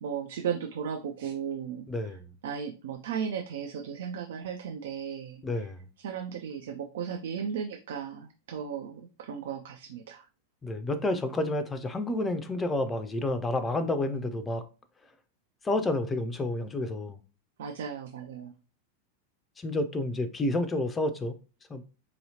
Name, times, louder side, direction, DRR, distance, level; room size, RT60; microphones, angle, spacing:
voice 1, 0.0-1.8 2.4-5.4 6.0-10.2 17.6-18.5, right 7 dB, 60° right, 0.4 m, -35 dB
voice 2, 1.9-2.2 5.4-5.8 10.6-14.6 15.6-17.2 19.6-21.3 21.7-21.8, left 2 dB, 15° left, 0.4 m, -30 dB
4.0 x 2.8 x 2.7 m
figure-of-eight pair, 90°, 0 cm